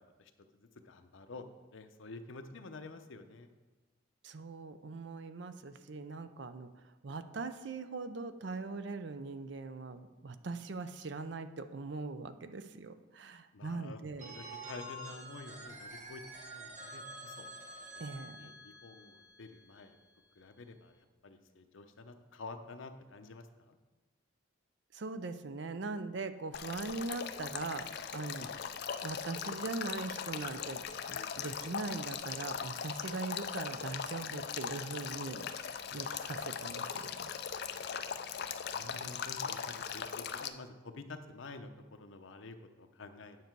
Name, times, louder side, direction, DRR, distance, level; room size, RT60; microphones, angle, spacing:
voice 1, 0.0-1.4 1.7-3.5 13.5-16.2 16.5-17.4 18.2-20.0 20.4-23.8 28.4-28.5 35.9-36.2 37.9-38.1 38.4-43.4, left 3 dB, 80° left, 7 dB, 0.8 m, -50 dB
voice 2, 4.2-6.7 7.0-14.3 18.0-18.4 24.9-28.5 29.0-30.8 31.1-37.3, right 3 dB, 60° right, 10 dB, 0.5 m, -41 dB
Telephone, 14.2-20.0, right 1 dB, 40° right, 1.2 m, -48 dB
Male speech man speaking / Stream / Trickle dribble, 26.5-40.5, left 7 dB, 55° left, 0.4 m, -40 dB
9.4 x 6.5 x 4.6 m, 1.2 s
head